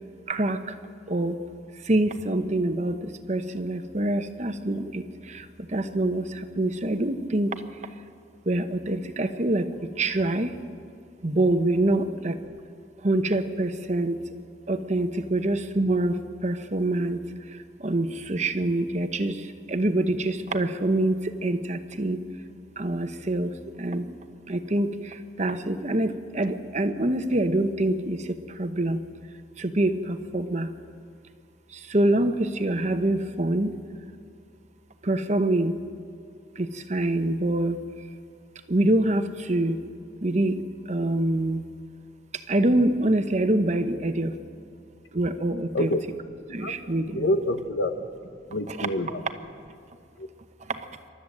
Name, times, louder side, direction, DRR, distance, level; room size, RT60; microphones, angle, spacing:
voice 1, 0.3-0.8 1.1-1.4 1.8-7.6 8.4-9.7 10.0-10.6 11.2-12.6 13.0-14.2 14.7-17.2 17.5-22.2 22.8-24.1 24.5-29.0 29.6-30.7 31.7-33.7 35.0-35.7 36.6-37.8 38.7-39.8 40.2-41.6 42.3-44.3 45.1-45.9 46.5-47.3 48.7-48.9 49.2-49.3 50.6-50.9, right 1 dB, 40° right, 8 dB, 1.0 m, -25 dB
voice 2, 45.7-46.1 46.6-46.7 47.1-47.9 48.5-49.2 50.2-50.3, left 1 dB, 75° left, 8 dB, 1.2 m, -26 dB
27.0 x 12.5 x 7.8 m, 2.3 s
head